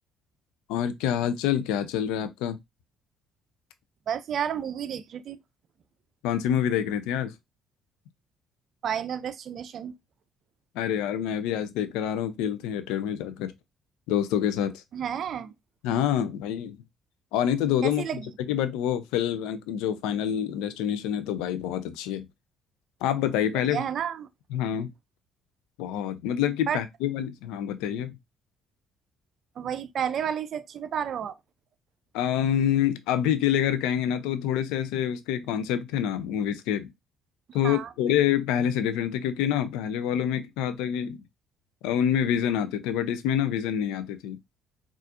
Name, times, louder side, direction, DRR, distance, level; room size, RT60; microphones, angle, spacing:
voice 1, 0.7-2.6 6.2-7.3 10.8-13.5 14.1-14.8 15.8-16.8 17.3-18.1 18.5-22.3 23.0-23.8 24.5-24.9 25.8-28.2 32.1-36.9 37.5-41.2 41.8-44.4, left 10 dB, 75° left, 0.4 m, -27 dB
voice 2, 4.1-5.4 8.8-9.9 14.9-15.5 17.8-18.2 23.7-24.3 26.7-26.8 29.6-31.4 37.6-37.9, right 8 dB, 55° right, 0.4 m, -31 dB
4.0 x 2.4 x 2.5 m
hypercardioid pair, 50°, 0 cm